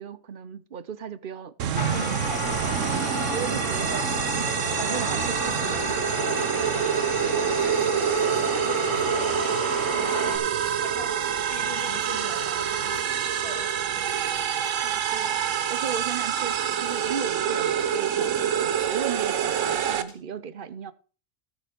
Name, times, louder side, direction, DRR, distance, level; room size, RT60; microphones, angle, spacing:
voice 1, 0.0-1.5 1.8-6.0 9.9-10.3 14.8-15.4 15.7-20.9, right 7 dB, 50° right, 0.8 m, -36 dB
sound 1, 1.6-20.0, right 9 dB, 90° right, 1.2 m, -26 dB
sound 2, 1.7-10.4, left 3 dB, 85° left, 2.5 m, -32 dB
sound 3, 2.4-20.1, equal, 15° right, 4.0 m, -50 dB
voice 2, 7.6-9.6 10.2-11.2 11.5-14.1, left 3 dB, 55° left, 3.6 m, -41 dB
13.5 x 6.7 x 5.2 m
omnidirectional pair, 1.3 m